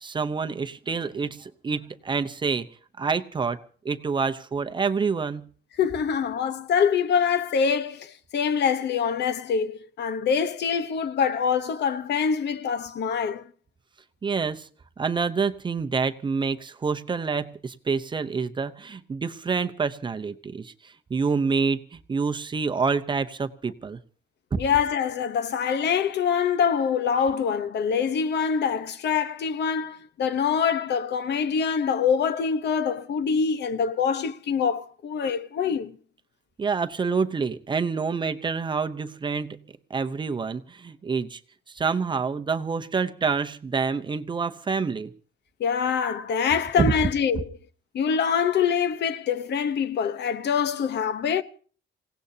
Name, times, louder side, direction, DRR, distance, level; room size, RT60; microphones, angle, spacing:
voice 1, 0.0-2.7 3.0-3.6 3.8-5.5 14.2-14.7 15.0-24.0 24.5-24.6 36.6-39.6 39.9-41.4 41.7-45.1 46.8-46.9, right 5 dB, 25° right, 0.7 m, -27 dB
voice 2, 5.8-13.4 24.6-35.9 45.6-47.6 47.9-51.4, left 7 dB, 60° left, 1.0 m, -25 dB
28.0 x 17.5 x 2.8 m
cardioid pair, 170°, 20 cm